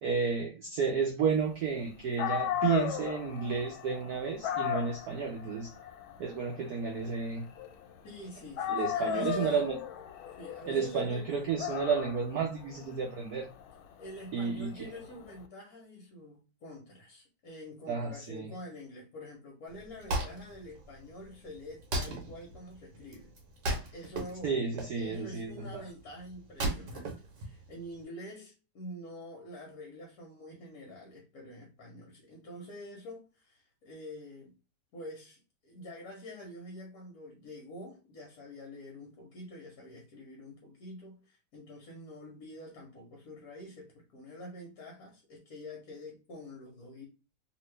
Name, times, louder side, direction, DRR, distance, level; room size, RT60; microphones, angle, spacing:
voice 1, 0.0-5.7 6.2-7.4 8.7-9.8 10.7-13.5 14.3-14.9 17.9-18.5 24.4-25.8, right 6 dB, 85° right, 0.8 m, -32 dB
Dog, 1.9-2.0 2.2-8.2 8.6-15.3, left 9 dB, 75° left, 1.3 m, -36 dB
voice 2, 8.0-9.7 10.4-11.3 14.0-23.3 23.9-24.6 24.9-27.1 27.4-34.5 34.9-47.0, left 1 dB, 60° left, 1.1 m, -46 dB
Wood, 19.7-28.0, right 1 dB, 60° right, 1.4 m, -37 dB
2.9 x 2.9 x 3.2 m
omnidirectional pair, 2.4 m